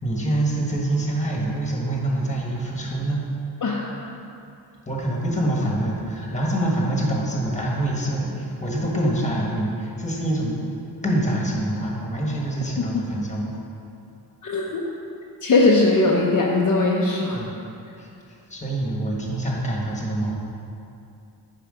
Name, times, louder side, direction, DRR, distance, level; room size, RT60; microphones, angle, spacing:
voice 1, 0.0-3.3 4.9-10.6 11.0-13.6 17.3-17.5 18.0-20.3, right 1 dB, 15° left, -2 dB, 1.5 m, -25 dB
voice 2, 3.6-3.9 12.9-13.1 14.4-14.8 15.4-17.4, left 2 dB, 45° left, -3 dB, 0.8 m, -20 dB
10.0 x 5.0 x 5.1 m, 2.6 s
wide cardioid pair, 125°, 43 cm